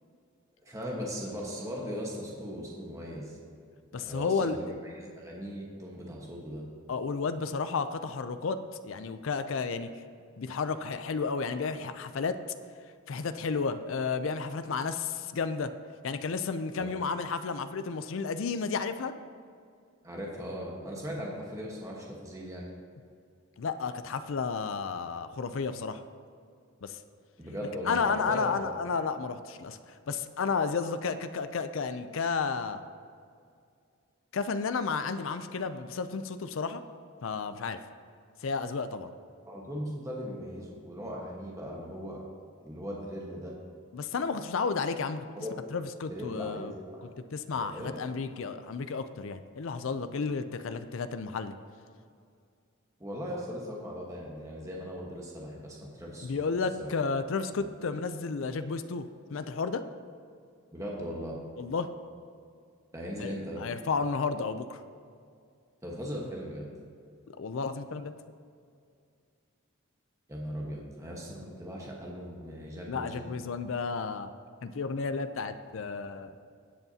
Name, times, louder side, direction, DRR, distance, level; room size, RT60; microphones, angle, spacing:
voice 1, 0.6-3.4 3.9-6.6 16.8-16.9 20.0-22.7 27.4-28.7 39.5-42.2 42.6-43.5 45.3-45.6 46.1-47.0 47.5-47.9 53.0-56.3 56.8-56.9 57.6-57.7 60.7-61.4 62.9-63.7 65.8-66.7 70.3-73.3, equal, 15° right, -3 dB, 1.2 m, -38 dB
voice 2, 3.9-4.6 6.9-9.9 10.4-12.4 13.1-15.7 16.0-19.1 23.6-26.0 26.8-27.0 27.9-32.8 34.3-36.8 37.2-37.8 38.4-39.1 43.9-45.2 45.7-46.7 47.3-51.5 56.2-59.9 61.6-61.9 63.2-63.3 63.6-64.8 67.4-68.1 72.9-74.3 74.6-76.3, left 5 dB, 65° left, 10 dB, 0.4 m, -32 dB
16.0 x 8.0 x 2.8 m, 2.3 s
head